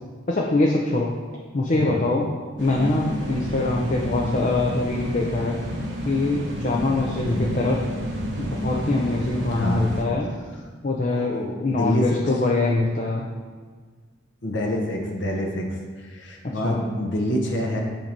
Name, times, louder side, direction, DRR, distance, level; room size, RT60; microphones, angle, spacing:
voice 1, 0.3-1.1 1.5-2.3 2.6-5.6 6.0-7.8 8.4-10.3 10.8-11.3 11.6-13.3 16.6-16.8, left 2 dB, 40° left, -2 dB, 0.6 m, -23 dB
sound 1, 2.6-10.0, equal, 70° right, 1.1 m, -29 dB
voice 2, 7.2-7.6 9.5-9.9 11.1-12.3 14.4-17.8, left 1 dB, 70° left, 1 dB, 0.8 m, -27 dB
8.7 x 2.9 x 5.2 m, 1.5 s
head